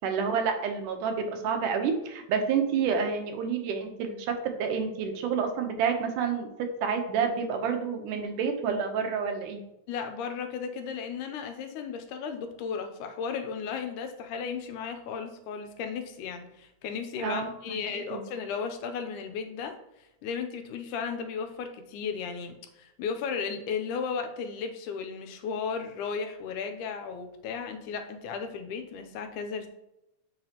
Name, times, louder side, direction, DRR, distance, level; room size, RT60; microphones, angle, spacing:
voice 1, 0.0-9.6 17.2-17.5 18.1-18.2, right 6 dB, 85° right, 5 dB, 2.4 m, -29 dB
voice 2, 9.9-19.7 20.2-29.7, left 6 dB, 85° left, 6 dB, 2.3 m, -35 dB
7.6 x 5.8 x 2.9 m, 0.88 s
omnidirectional pair, 3.6 m